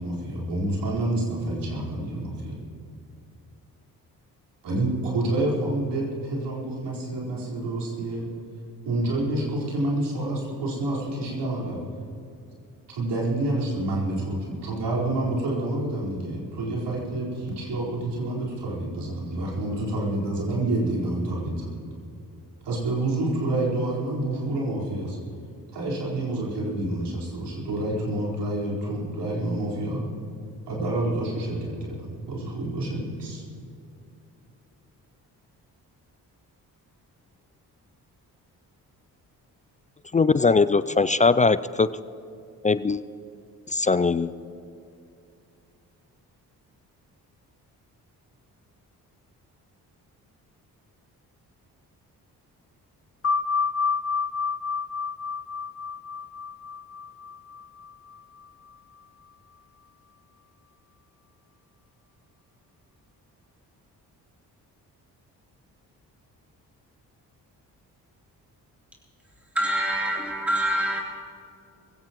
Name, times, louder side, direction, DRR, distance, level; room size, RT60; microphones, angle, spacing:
voice 1, 0.0-2.6 4.6-8.3 8.8-11.8 12.9-21.7 22.6-25.2 25.7-30.1 30.7-33.4, right 2 dB, 70° right, -4 dB, 4.5 m, -28 dB
voice 2, 40.1-41.9 42.6-43.0 43.7-44.3, left 4 dB, 20° left, 15 dB, 0.3 m, -20 dB
sound 1, 53.2-58.4, left 5 dB, 35° left, 1.3 m, -29 dB
voice 3, 69.5-71.0, right 1 dB, 5° right, -3 dB, 3.4 m, -25 dB
22.5 x 16.0 x 3.1 m, 2.6 s
hypercardioid pair, 45°, 43 cm